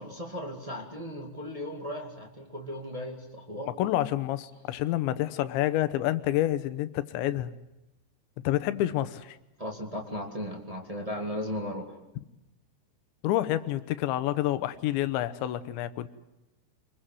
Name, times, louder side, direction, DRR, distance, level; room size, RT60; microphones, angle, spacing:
voice 1, 0.0-3.7 9.6-11.9, left 1 dB, 50° right, 1 dB, 0.4 m, -36 dB
voice 2, 3.8-7.5 8.4-9.4 13.2-16.1, left 14 dB, 80° left, 13 dB, 3.2 m, -28 dB
26.5 x 21.5 x 7.7 m, 0.91 s
omnidirectional pair, 5.4 m